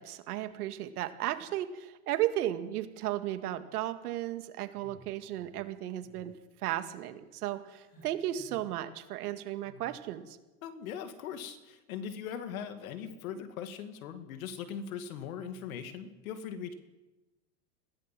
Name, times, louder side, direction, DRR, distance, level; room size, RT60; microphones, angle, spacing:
voice 1, 0.0-6.3 6.6-10.4, right 13 dB, 75° right, 9 dB, 2.1 m, -35 dB
sound 1, 4.7-5.6 6.0-6.3 6.6-7.1 7.8-8.7 9.6-10.0, equal, 20° left, 7.1 m, -57 dB
voice 2, 10.6-16.7, left 7 dB, 65° left, 9 dB, 2.4 m, -40 dB
21.5 x 15.5 x 7.7 m, 1.1 s
supercardioid pair, 180°, 46 cm